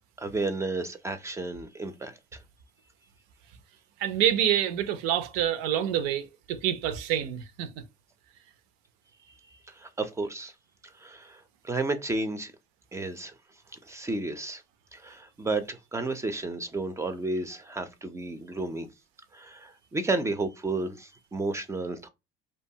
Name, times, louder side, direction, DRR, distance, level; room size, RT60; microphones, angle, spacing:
voice 1, 0.2-2.1 9.8-10.5 11.0-11.4 11.6-12.5 12.9-13.3 13.9-14.6 14.9-18.9 19.3-22.1, right 2 dB, 15° right, 0.4 m, -32 dB
voice 2, 4.0-7.7, right 10 dB, 85° right, 0.5 m, -27 dB
2.7 x 2.3 x 2.7 m
supercardioid pair, 110°, 19 cm